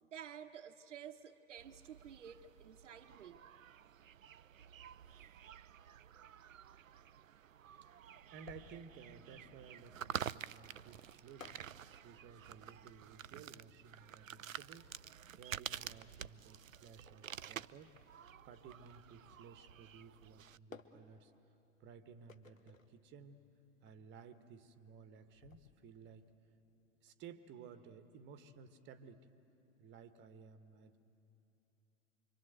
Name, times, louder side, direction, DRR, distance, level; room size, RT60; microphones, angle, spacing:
voice 1, 0.0-3.4, right 8 dB, 65° right, 1.0 m, -52 dB
sound 1, 1.6-20.6, right 9 dB, 85° right, 0.5 m, -50 dB
sound 2, 8.0-26.3, left 4 dB, 85° left, 1.2 m, -62 dB
voice 2, 8.3-11.6 12.0-17.9 18.4-21.3 21.8-23.4 23.8-26.3 27.0-29.3 29.8-31.0, right 6 dB, 30° right, 1.3 m, -56 dB
26.0 x 25.0 x 8.1 m
figure-of-eight pair, 100°, 39 cm